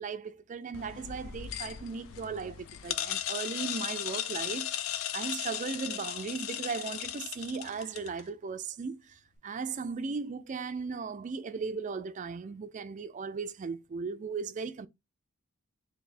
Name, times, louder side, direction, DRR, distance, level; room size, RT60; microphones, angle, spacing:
voice 1, 0.0-4.7 5.1-14.9, right 5 dB, 35° right, 0.3 m, -37 dB
sound 1, 0.7-8.2, left 11 dB, 70° left, 0.4 m, -37 dB
3.3 x 2.7 x 4.1 m
head